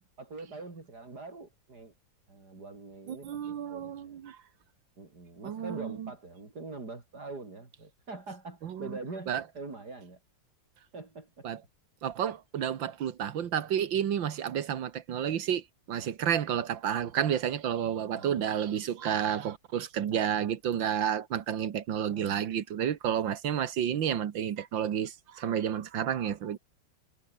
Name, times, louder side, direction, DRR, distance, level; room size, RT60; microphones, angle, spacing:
voice 1, 0.2-1.9 2.3-4.1 5.0-10.2 10.9-11.5 18.1-18.4 20.1-20.2 22.1-22.4 24.9-25.0, right 3 dB, 55° right, 5.3 m, -44 dB
voice 2, 3.1-4.4 5.4-6.1 8.6-9.0 9.3-9.4 11.4-11.6 12.0-26.6, right 9 dB, 85° right, 2.1 m, -31 dB
omnidirectional pair, 2.0 m